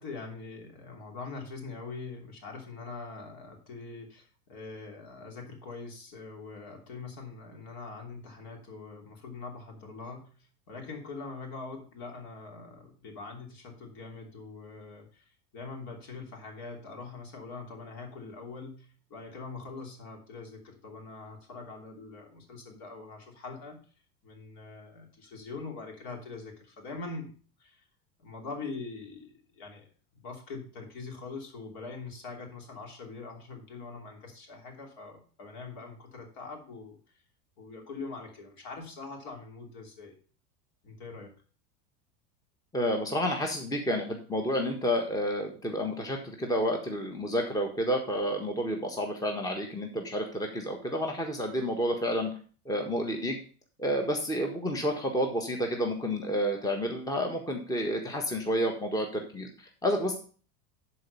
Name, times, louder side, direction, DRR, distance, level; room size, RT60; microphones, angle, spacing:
voice 1, 0.0-10.3 10.7-15.2 15.5-23.8 24.2-27.3 27.6-27.8 28.2-29.9 30.2-37.0 37.6-40.2 40.8-41.3, left 4 dB, 55° left, 2 dB, 3.1 m, -43 dB
voice 2, 42.7-52.3 52.6-53.4 53.8-60.1, equal, 10° left, 3 dB, 1.3 m, -30 dB
11.0 x 4.4 x 5.5 m, 0.41 s
hypercardioid pair, 90°, 44 cm